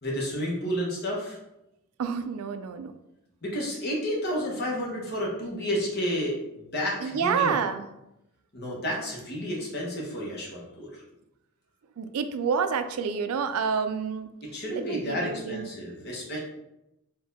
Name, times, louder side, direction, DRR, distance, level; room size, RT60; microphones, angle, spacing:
voice 1, 0.0-1.4 3.4-7.6 8.5-11.0 14.5-16.4, equal, 50° left, -3 dB, 1.2 m, -31 dB
voice 2, 2.0-2.9 7.0-7.9 12.0-14.3 14.7-15.7, right 6 dB, 90° right, 10 dB, 0.4 m, -28 dB
4.5 x 2.7 x 3.5 m, 0.88 s
head